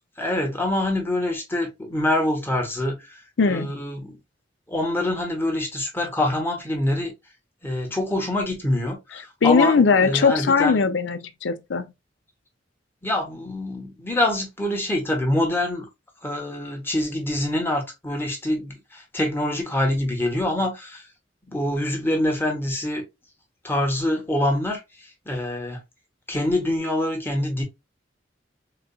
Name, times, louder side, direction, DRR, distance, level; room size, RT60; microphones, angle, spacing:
voice 1, 0.2-3.2 3.4-4.2 4.7-7.1 7.6-10.8 13.0-15.9 16.2-21.1 21.5-23.0 23.6-24.8 25.3-25.8 26.3-27.6, left 1 dB, 10° left, 1.0 m, -25 dB
voice 2, 3.4-3.7 9.4-11.8, left 5 dB, 70° left, 0.5 m, -19 dB
4.1 x 2.3 x 2.3 m
head